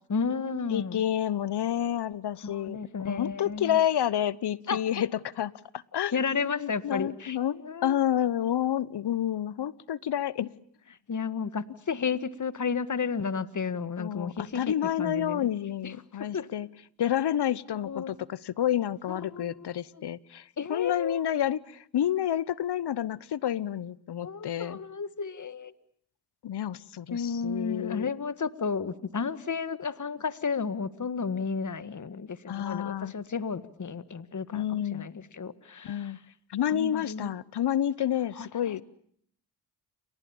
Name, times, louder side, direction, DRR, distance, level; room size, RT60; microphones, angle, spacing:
voice 1, 0.1-1.0 2.4-3.8 4.7-4.9 6.1-8.0 10.9-15.5 15.8-16.5 17.8-18.1 19.1-19.7 19.9-20.0 20.6-21.2 24.2-25.7 27.1-36.2 36.7-37.3 38.3-38.8, left 5 dB, 40° left, 1.7 m, -33 dB
voice 2, 0.7-5.1 5.4-5.5 5.9-6.1 6.6-10.5 14.0-16.7 17.0-24.8 26.4-28.1 32.5-33.1 34.5-35.1 35.8-36.2 36.5-38.8, left 10 dB, 60° left, 1.1 m, -29 dB
29.5 x 25.0 x 7.2 m
supercardioid pair, 40°, 46 cm